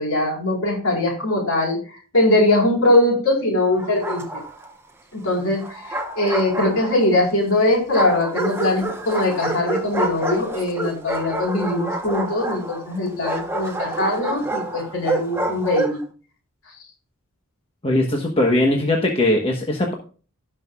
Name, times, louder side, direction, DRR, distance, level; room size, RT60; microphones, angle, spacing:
voice 1, 0.0-4.4 5.1-16.0, left 1 dB, 60° left, -2 dB, 4.3 m, -21 dB
Bark, 3.8-4.7 5.6-7.2 7.9-16.0, right 2 dB, 10° right, 1.0 m, -28 dB
voice 2, 17.8-19.9, left 1 dB, 25° left, 1 dB, 1.1 m, -20 dB
17.0 x 5.7 x 2.4 m, 0.37 s
head